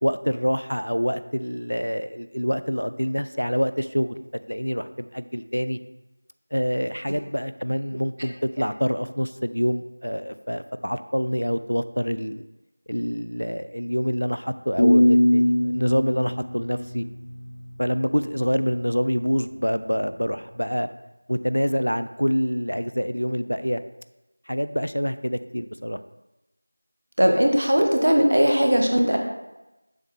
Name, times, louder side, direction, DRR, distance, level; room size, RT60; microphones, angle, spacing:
voice 1, 0.0-4.2 4.5-5.8 6.5-12.4 12.9-17.0 17.8-20.9 21.3-23.8 24.5-26.0, equal, 85° left, 12 dB, 0.4 m, -26 dB
sound 1, 14.8-17.7, left 1 dB, 35° left, 0.9 m, -21 dB
voice 2, 27.2-29.2, equal, 45° right, 2 dB, 0.9 m, -19 dB
7.1 x 3.2 x 5.5 m, 0.99 s
figure-of-eight pair, 175°, 0 cm